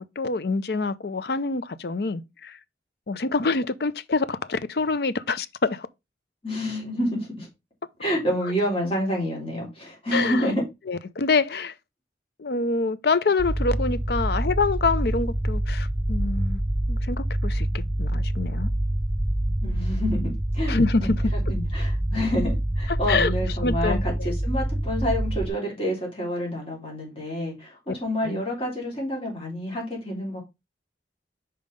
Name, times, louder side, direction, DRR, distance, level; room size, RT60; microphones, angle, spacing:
voice 1, 0.0-2.6 3.1-5.9 10.1-10.5 10.9-11.7 12.4-16.6 16.9-18.7 19.6-19.7 20.7-21.1 22.9-23.3 23.6-24.1 28.2-28.4, left 3 dB, 60° left, 0.6 m, -26 dB
voice 2, 6.4-7.5 8.0-10.6 19.6-21.1 21.5-30.4, equal, 30° left, 3.3 m, -28 dB
sound 1, 13.4-25.5, right 1 dB, 5° right, 1.8 m, -26 dB
5.4 x 4.4 x 5.1 m
head